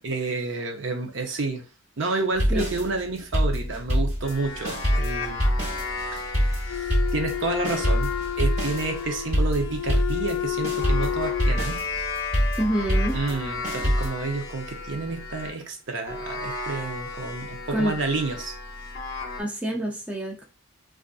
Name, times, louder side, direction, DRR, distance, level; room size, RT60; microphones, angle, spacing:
voice 1, 0.0-1.7 2.0-5.4 5.7-11.8 13.1-18.6, right 3 dB, 60° right, 4 dB, 0.7 m, -30 dB
sound 1, 2.4-4.4 4.6-10.4 10.6-14.1, equal, 30° right, 1.2 m, -25 dB
sound 2, 4.2-15.6 16.1-19.4, left 3 dB, 45° left, 0.7 m, -35 dB
Wind instrument woodwind instrument, 6.7-11.6, left 11 dB, 75° left, 0.3 m, -31 dB
voice 2, 12.6-13.2 17.7-17.9 19.4-20.5, right 1 dB, 5° right, -1 dB, 0.4 m, -27 dB
3.8 x 2.5 x 2.3 m, 0.31 s
head